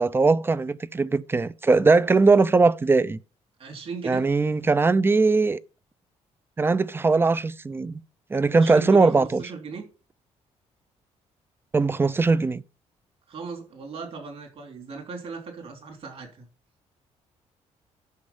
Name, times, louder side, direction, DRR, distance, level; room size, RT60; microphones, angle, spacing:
voice 1, 0.0-3.2 4.0-5.6 6.6-8.0 8.3-9.4 11.7-12.6, right 3 dB, 20° right, 0.5 m, -20 dB
voice 2, 3.6-4.2 8.5-9.8 13.3-16.4, right 5 dB, 55° right, 3.3 m, -38 dB
12.0 x 5.3 x 5.5 m
cardioid pair, 115°, 12 cm